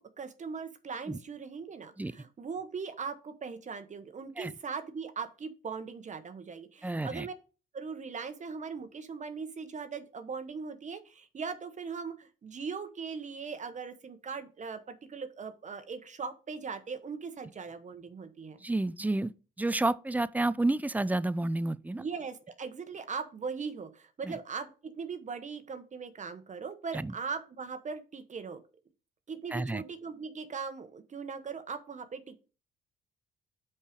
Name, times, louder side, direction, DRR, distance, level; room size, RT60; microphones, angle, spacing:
voice 1, 0.0-7.3 7.7-18.6 22.0-28.6 29.3-32.4, right 5 dB, 40° right, 1.0 m, -39 dB
voice 2, 6.8-7.3 18.6-19.3 19.6-22.0 24.2-24.4 26.9-27.1 29.5-29.8, right 2 dB, 10° right, 0.4 m, -30 dB
5.5 x 4.7 x 5.0 m
supercardioid pair, 70°, 19 cm